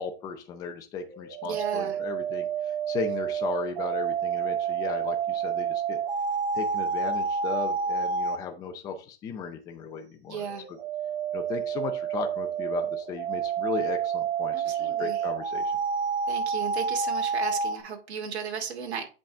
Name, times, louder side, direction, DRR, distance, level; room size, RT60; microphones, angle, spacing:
voice 1, 0.0-6.0 6.5-10.8 11.3-15.8, left 5 dB, 10° left, 4 dB, 0.6 m, -36 dB
sound 1, 1.1-8.4 10.5-17.8, right 6 dB, 60° right, 1.7 m, -29 dB
voice 2, 1.4-2.0 10.3-10.6 14.5-15.2 16.3-19.0, right 7 dB, 75° right, 2 dB, 2.4 m, -34 dB
8.6 x 5.3 x 3.4 m, 0.33 s
hypercardioid pair, 155°, 33 cm